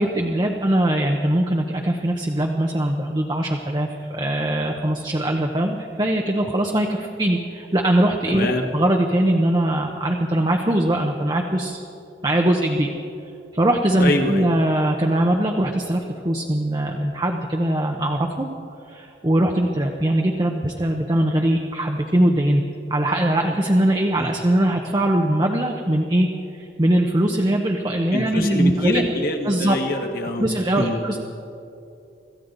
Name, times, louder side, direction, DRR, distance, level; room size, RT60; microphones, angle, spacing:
voice 1, 0.0-11.8 12.2-12.9 13.5-18.5 18.9-22.6 22.9-26.3 26.5-29.0 29.4-29.8 30.4-31.2, right 1 dB, 25° right, 2 dB, 0.8 m, -21 dB
voice 2, 8.3-8.6 14.0-14.5 24.2-24.3 28.1-30.4 30.8-31.0, left 1 dB, 55° left, 3 dB, 1.8 m, -25 dB
25.5 x 14.5 x 4.0 m, 2.7 s
head